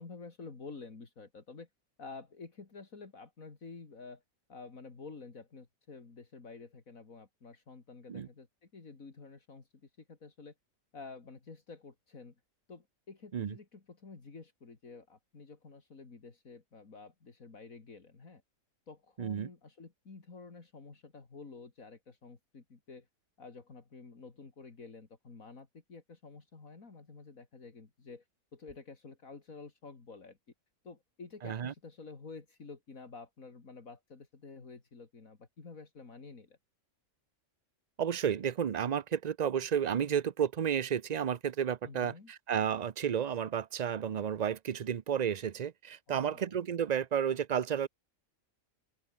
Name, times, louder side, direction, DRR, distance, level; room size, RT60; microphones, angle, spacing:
voice 1, 0.0-1.7 2.0-4.2 4.5-10.5 10.9-12.3 12.7-18.4 18.9-23.1 23.4-28.2 28.5-30.4 30.8-36.6 41.8-42.3 46.1-46.6, left 4 dB, 70° left, 3.2 m, -50 dB
voice 2, 19.2-19.5 31.4-31.7 38.0-47.9, right 8 dB, 50° right, 0.5 m, -32 dB
open air
omnidirectional pair, 1.5 m